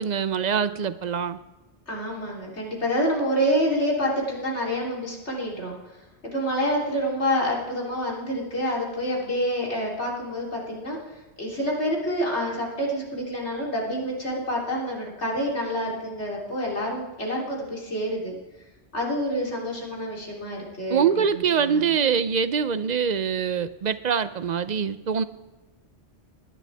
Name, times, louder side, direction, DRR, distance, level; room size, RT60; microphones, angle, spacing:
voice 1, 0.0-1.4 20.9-25.2, right 7 dB, 50° right, 13 dB, 0.6 m, -24 dB
voice 2, 1.9-5.7 6.3-11.0 11.4-18.4 18.9-22.0, equal, 85° left, -3 dB, 3.8 m, -27 dB
20.0 x 11.0 x 3.5 m, 1.1 s
omnidirectional pair, 1.1 m